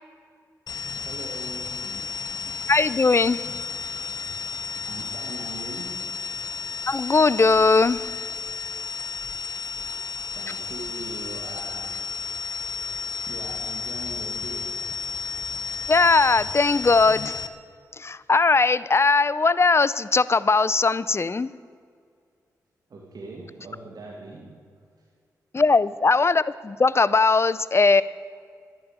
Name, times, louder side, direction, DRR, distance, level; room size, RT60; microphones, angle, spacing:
sound 1, 0.7-17.5, left 4 dB, 70° left, 0.8 m, -33 dB
voice 1, 1.0-2.1 4.8-6.2 9.8-10.0 10.3-12.2 12.6-12.7 13.2-14.9 22.9-24.9, right 3 dB, 65° right, 0 dB, 2.2 m, -41 dB
voice 2, 2.7-3.5 6.9-8.1 15.9-17.4 18.0-21.5 25.5-28.0, left 4 dB, 40° left, 18 dB, 0.6 m, -19 dB
12.0 x 11.0 x 8.9 m, 2.1 s
supercardioid pair, 45°, 7 cm